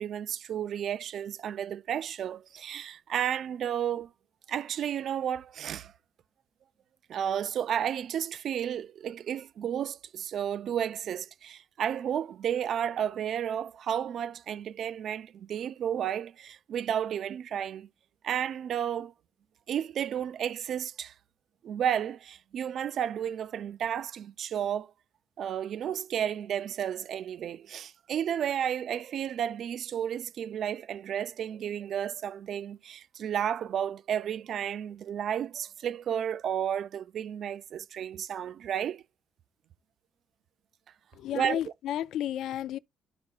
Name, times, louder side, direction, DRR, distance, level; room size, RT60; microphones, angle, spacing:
voice 1, 0.0-4.1 4.5-5.9 7.1-17.9 18.2-19.1 19.7-21.1 21.6-24.9 25.4-39.0 41.3-41.6, right 9 dB, 65° right, 0.4 m, -32 dB
voice 2, 41.1-42.8, left 11 dB, 80° left, 0.3 m, -32 dB
12.5 x 4.7 x 2.4 m
cardioid pair, 90°, 0 cm